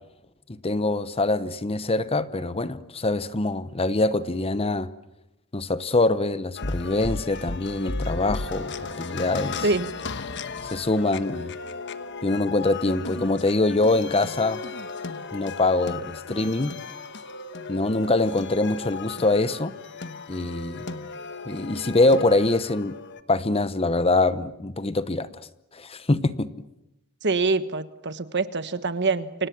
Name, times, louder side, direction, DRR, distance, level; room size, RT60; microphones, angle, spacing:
voice 1, 0.5-4.9 5.5-8.7 9.0-9.7 10.7-11.5 12.2-14.6 15.3-16.8 17.7-19.8 20.3-20.9 21.5-23.0 23.3-25.3 25.7-26.5, left 2 dB, 25° left, 0.9 m, -24 dB
sound 1, 6.6-23.2, left 3 dB, 55° left, 1.3 m, -35 dB
voice 2, 27.2-29.5, right 3 dB, 50° right, 1.4 m, -25 dB
30.0 x 25.5 x 7.4 m
head